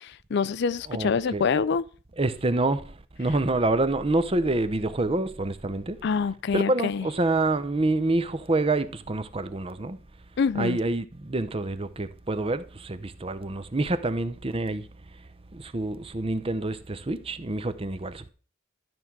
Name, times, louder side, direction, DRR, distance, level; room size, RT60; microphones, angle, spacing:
voice 1, 0.3-1.8 6.0-7.0 10.4-10.8, left 5 dB, 55° left, 0.4 m, -25 dB
voice 2, 0.9-1.4 2.2-2.8 3.2-6.0 6.5-10.0 10.5-14.8 15.5-18.3, right 2 dB, 30° right, 0.7 m, -27 dB
12.5 x 4.7 x 7.3 m
head